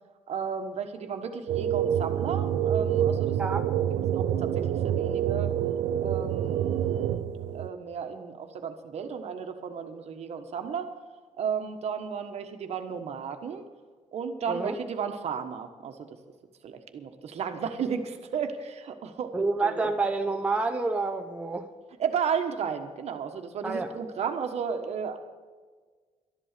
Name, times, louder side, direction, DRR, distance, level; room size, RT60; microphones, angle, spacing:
voice 1, 0.3-3.4 4.1-5.5 6.0-7.3 7.5-10.9 11.4-13.7 14.1-16.1 16.6-19.9 22.0-25.2, right 7 dB, 55° right, 6 dB, 1.4 m, -33 dB
sound 1, 1.5-7.7, right 10 dB, 80° right, 0.6 m, -27 dB
voice 2, 19.3-21.7 23.6-23.9, right 3 dB, 10° right, 4 dB, 0.8 m, -28 dB
12.5 x 11.0 x 6.8 m, 1.5 s
cardioid pair, 140°, 13 cm